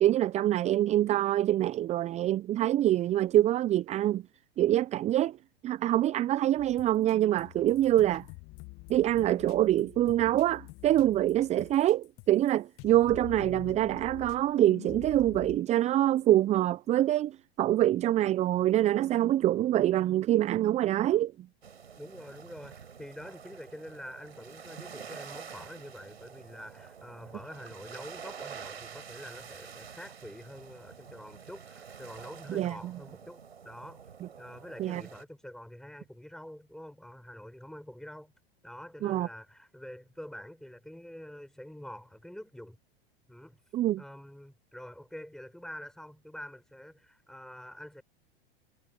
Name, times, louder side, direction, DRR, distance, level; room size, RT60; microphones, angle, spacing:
voice 1, 0.0-4.2 4.6-5.4 5.6-8.2 8.9-21.3 32.5-32.9 34.8-35.0 39.0-39.3 43.7-44.0, right 13 dB, 20° right, 0.5 m, -25 dB
sound 1, 6.6-12.5 12.8-15.6, left 24 dB, 40° left, 1.7 m, -47 dB
sound 2, 21.6-35.2, right 7 dB, 80° right, 5.5 m, -47 dB
voice 2, 22.0-34.0 34.4-38.3 38.6-42.8 43.3-43.6 44.0-48.0, equal, ahead, 5.2 m, -46 dB
hypercardioid pair, 95°, 31 cm